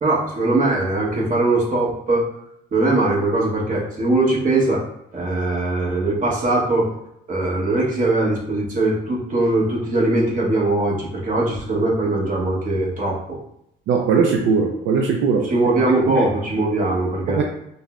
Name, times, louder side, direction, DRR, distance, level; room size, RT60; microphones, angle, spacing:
voice 1, 0.0-2.2 2.7-4.8 5.1-6.9 7.3-13.4 15.4-17.4, right 2 dB, 45° right, -4 dB, 1.2 m, -21 dB
voice 2, 13.9-15.5 16.1-16.3 17.3-17.4, right 5 dB, 80° right, 2 dB, 0.4 m, -19 dB
5.3 x 2.1 x 2.4 m, 0.77 s
cardioid pair, 90°, 20 cm